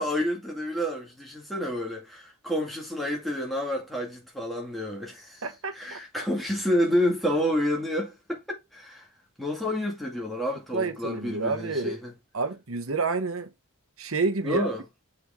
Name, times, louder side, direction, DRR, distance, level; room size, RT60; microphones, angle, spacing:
voice 1, 0.0-5.4 5.7-9.0 9.4-12.1 14.4-14.8, left 1 dB, ahead, 2.1 m, -29 dB
voice 2, 5.4-6.2 10.7-12.0 12.3-13.5 14.0-14.7, right 3 dB, 75° right, 1.0 m, -29 dB
6.6 x 4.3 x 3.6 m
head